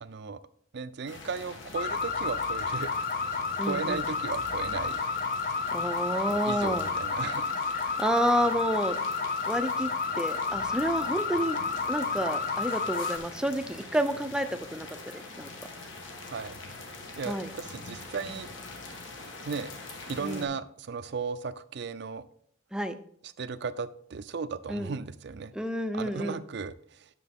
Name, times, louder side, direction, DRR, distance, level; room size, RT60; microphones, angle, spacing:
voice 1, 0.0-0.4 0.7-2.9 3.3-5.0 6.3-7.4 16.3-16.6 17.2-18.5 19.4-19.7 20.1-22.2 23.4-25.5 25.9-27.1, right 5 dB, 60° right, 13 dB, 0.5 m, -36 dB
sound 1, 1.1-20.4, left 3 dB, 70° left, 1.4 m, -44 dB
sound 2, 1.7-13.2, left 4 dB, 45° left, 0.7 m, -31 dB
voice 2, 3.6-4.0 5.7-6.9 7.7-9.0 9.5-9.9 10.2-11.6 11.9-14.9 15.1-15.5 17.3-17.5 20.2-20.5 22.7-22.9 24.7-24.9 25.5-26.4, equal, 5° right, 8 dB, 0.5 m, -29 dB
10.0 x 6.7 x 3.6 m, 0.67 s
head